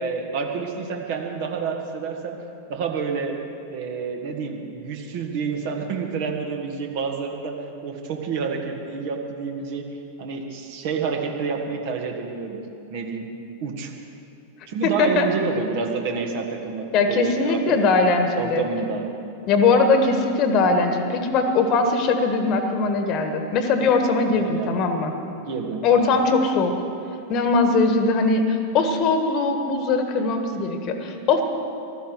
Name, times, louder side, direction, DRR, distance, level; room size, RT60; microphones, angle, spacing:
voice 1, 0.0-2.4 2.7-3.4 3.7-7.5 7.8-9.8 10.2-12.6 12.9-13.3 13.6-13.9 14.7-17.8 18.4-19.1 24.3-24.8 25.5-26.1, right 5 dB, 50° right, 3 dB, 1.8 m, -28 dB
voice 2, 14.8-15.3 16.9-18.6 19.5-25.1 25.8-26.7 27.3-31.4, left 3 dB, 35° left, 6 dB, 1.5 m, -20 dB
15.0 x 13.0 x 6.2 m, 2.6 s
figure-of-eight pair, 90°, 0 cm